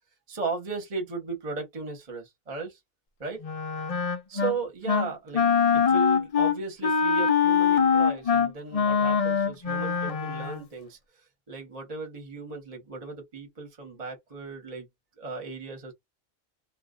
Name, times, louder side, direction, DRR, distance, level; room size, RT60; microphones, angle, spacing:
voice 1, 0.3-2.8 3.2-3.4 4.3-5.4 5.7-11.0 11.5-14.9 15.2-15.9, right 4 dB, 35° right, 1.0 m, -36 dB
Wind instrument woodwind instrument, 3.4-4.6 4.9-5.1 5.3-10.6, left 6 dB, 55° left, 0.4 m, -23 dB
2.4 x 2.4 x 3.7 m
omnidirectional pair, 1.3 m